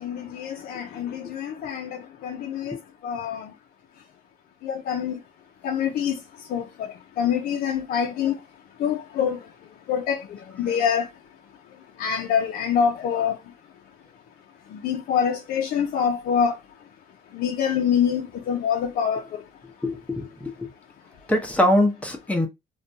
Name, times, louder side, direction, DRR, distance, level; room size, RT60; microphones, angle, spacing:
voice 1, 0.0-2.8 3.0-3.4 4.6-5.1 5.6-6.1 6.5-6.9 7.2-8.3 8.8-9.4 9.9-10.2 10.6-11.1 12.0-13.4 14.8-16.5 17.4-18.2 18.5-19.2, left 7 dB, 60° left, 0.5 m, -25 dB
voice 2, 19.8-20.7 21.3-22.5, left 1 dB, 10° left, 0.8 m, -23 dB
2.5 x 2.2 x 2.6 m
cardioid pair, 110°, 17 cm